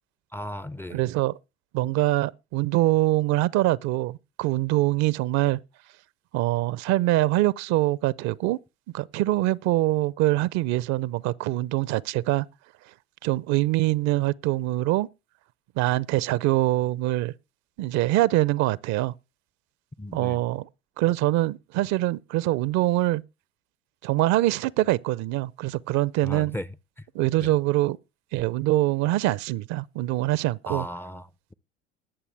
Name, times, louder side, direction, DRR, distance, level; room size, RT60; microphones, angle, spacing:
voice 1, 0.3-1.0 20.0-20.4 26.2-26.7 27.4-27.6 30.7-31.5, equal, 5° left, 0.5 m, -35 dB
voice 2, 0.9-1.3 1.7-5.6 6.3-8.6 8.9-12.5 13.2-15.1 15.8-17.3 17.8-19.1 20.1-20.7 21.0-23.2 24.0-26.6 27.1-28.0 28.3-30.9, right 17 dB, 55° right, 0.6 m, -24 dB
20.0 x 7.1 x 3.4 m
hypercardioid pair, 70°, 33 cm